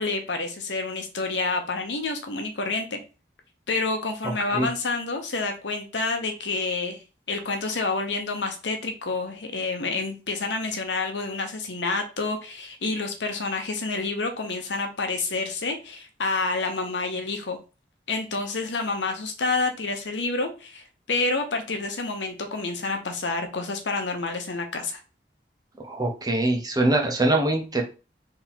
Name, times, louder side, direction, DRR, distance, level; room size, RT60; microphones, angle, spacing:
voice 1, 0.0-3.0 3.7-7.0 7.3-17.6 18.1-25.0, left 3 dB, 85° left, 5 dB, 1.0 m, -28 dB
voice 2, 25.8-27.8, right 2 dB, 20° right, 2 dB, 0.9 m, -23 dB
3.7 x 3.0 x 4.4 m, 0.32 s
head